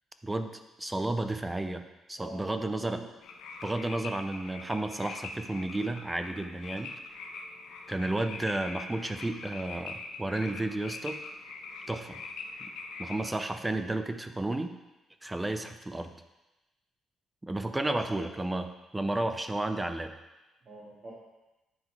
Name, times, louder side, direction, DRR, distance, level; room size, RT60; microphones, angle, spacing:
voice 1, 0.8-3.0 3.6-6.9 7.9-11.2 11.9-12.2 12.6-12.7 13.0-14.7 15.2-16.1 17.4-18.7 18.9-20.1, right 2 dB, 15° right, 8 dB, 0.5 m, -32 dB
voice 2, 2.2-3.1 17.9-18.3 20.6-21.1, right 2 dB, 50° right, -9 dB, 2.1 m, -46 dB
sound 1, 3.2-13.3, left 4 dB, 85° left, 0.7 m, -43 dB
9.5 x 3.8 x 4.7 m, 1.0 s
cardioid pair, 90°, 0 cm